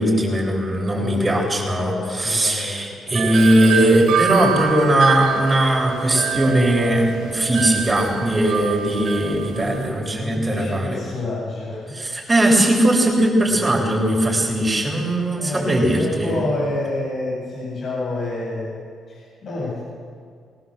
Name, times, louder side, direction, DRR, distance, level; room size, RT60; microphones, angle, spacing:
voice 1, 0.0-10.9 11.9-16.3, right 1 dB, 20° right, -2 dB, 7.3 m, -19 dB
voice 2, 0.9-3.3 10.2-12.0 13.5-13.6 15.4-19.8, left 2 dB, 50° left, -5 dB, 7.7 m, -29 dB
Wind chime, 3.1-9.9, right 8 dB, 80° right, 3.8 m, -26 dB
22.0 x 18.5 x 8.0 m, 2.1 s
cardioid pair, 90°, 0 cm